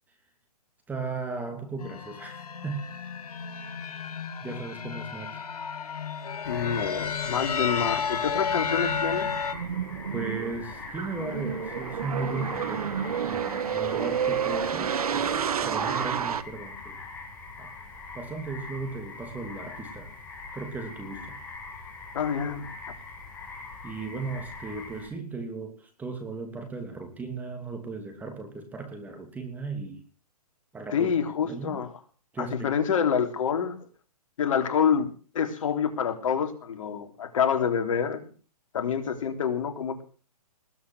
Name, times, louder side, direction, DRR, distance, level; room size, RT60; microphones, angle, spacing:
voice 1, 0.9-3.0 4.4-5.4 10.1-17.0 17.6-17.7 18.1-20.1 20.5-21.4 23.8-30.0 30.7-31.1 31.4-31.8 32.3-32.8, right 3 dB, 10° right, 5 dB, 2.9 m, -36 dB
sound 1, 1.8-9.5, left 6 dB, 70° left, 2.5 m, -32 dB
sound 2, 6.4-25.1, left 3 dB, 10° left, 6.5 m, -42 dB
voice 2, 6.5-9.3 22.1-22.7 30.9-31.9 32.4-33.8 34.4-35.1 35.3-38.2 38.7-40.0, left 7 dB, 55° left, 6 dB, 3.7 m, -27 dB
sound 3, 9.0-16.4, right 8 dB, 65° right, 1.6 m, -30 dB
20.5 x 9.4 x 6.3 m, 0.40 s
hypercardioid pair, 145°, 20 cm